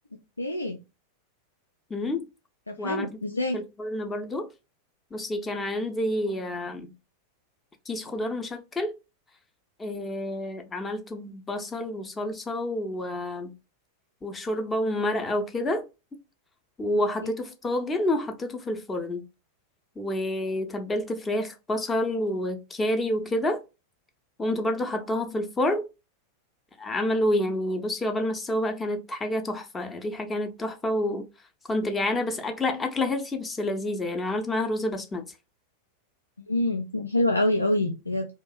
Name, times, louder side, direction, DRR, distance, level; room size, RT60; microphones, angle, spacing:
voice 1, 0.4-0.8 2.7-3.6 36.5-38.3, left 1 dB, 85° left, 0.3 m, -26 dB
voice 2, 1.9-2.2 2.8-3.1 3.5-4.5 5.1-6.9 7.9-8.9 9.8-13.5 14.2-15.8 16.8-19.2 20.0-23.6 24.4-25.8 26.8-31.3 31.7-35.2, left 1 dB, 15° left, 0.5 m, -28 dB
2.6 x 2.3 x 2.3 m
figure-of-eight pair, 90°, 0 cm